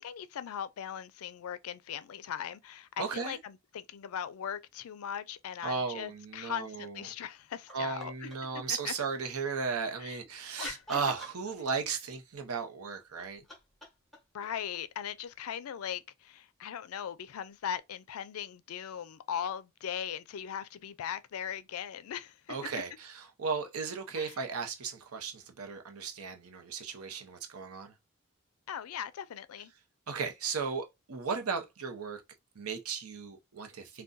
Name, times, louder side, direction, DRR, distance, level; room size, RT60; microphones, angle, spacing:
voice 1, 0.0-8.3 8.7-8.9 10.0-10.2 10.6-10.8 14.3-22.6 24.2-24.3 28.7-29.7, left 9 dB, 80° left, 0.4 m, -39 dB
voice 2, 3.0-3.4 5.6-7.1 7.7-13.5 22.5-27.9 30.1-32.2 32.5-34.0, right 5 dB, 90° right, 0.7 m, -36 dB
sound 1, 7.7-8.6 10.0-11.9 13.0-15.6 17.6-17.7, left 1 dB, ahead, 1.0 m, -50 dB
2.5 x 2.2 x 3.7 m
head